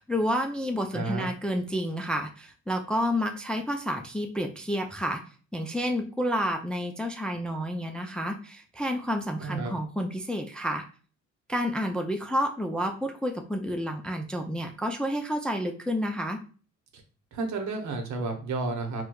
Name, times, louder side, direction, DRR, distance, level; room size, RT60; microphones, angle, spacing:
voice 1, 0.0-5.2 5.5-10.9 11.5-16.4, equal, 5° left, 4 dB, 0.3 m, -30 dB
voice 2, 0.9-1.3 9.4-9.7 16.9-17.0 17.3-19.0, right 3 dB, 65° right, 4 dB, 0.9 m, -31 dB
4.4 x 2.2 x 2.3 m, 0.39 s
cardioid pair, 90°, 30 cm